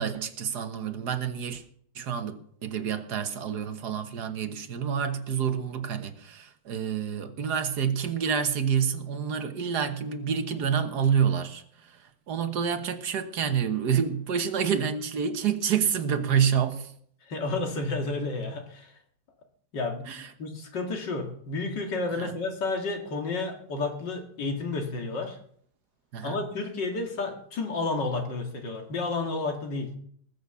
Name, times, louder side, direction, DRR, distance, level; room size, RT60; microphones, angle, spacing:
voice 1, 0.0-1.6 2.0-16.9 20.1-20.3 22.1-22.3 26.1-26.4, right 7 dB, 70° right, 1.8 m, -28 dB
voice 2, 17.3-18.9 19.7-20.1 20.4-25.4 26.2-30.0, left 3 dB, 85° left, 2.8 m, -31 dB
19.5 x 6.9 x 7.0 m
omnidirectional pair, 1.9 m